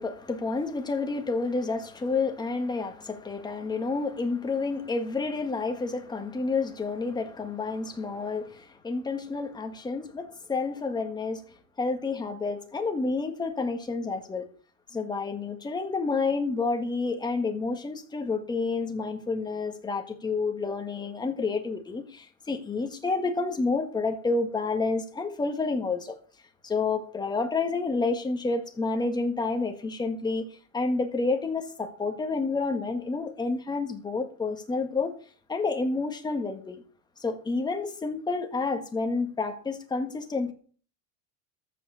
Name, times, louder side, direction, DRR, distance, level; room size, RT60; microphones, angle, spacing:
voice 1, 0.0-11.4 11.8-14.5 14.9-26.1 26.6-30.5 30.7-35.1 35.5-36.8 37.2-40.5, left 3 dB, 10° left, 1.6 m, -29 dB
14.0 x 5.9 x 6.8 m
supercardioid pair, 145°, 38 cm